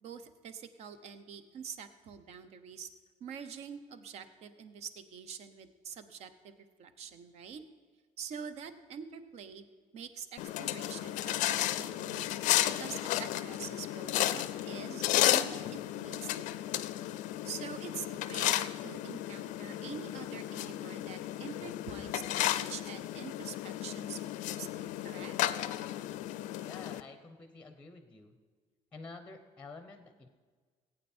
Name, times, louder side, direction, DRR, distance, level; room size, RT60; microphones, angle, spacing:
voice 1, 0.0-2.9 3.2-7.6 8.2-9.7 9.9-12.4 12.8-15.6 15.9-16.7 17.4-25.3, right 7 dB, 55° right, 10 dB, 0.9 m, -46 dB
sound 1, 10.4-27.0, left 14 dB, 80° left, 0.5 m, -33 dB
voice 2, 26.6-28.4 28.9-30.3, left 3 dB, 10° left, 8 dB, 0.7 m, -49 dB
18.0 x 8.8 x 4.4 m, 1.5 s
cardioid pair, 170°, 13 cm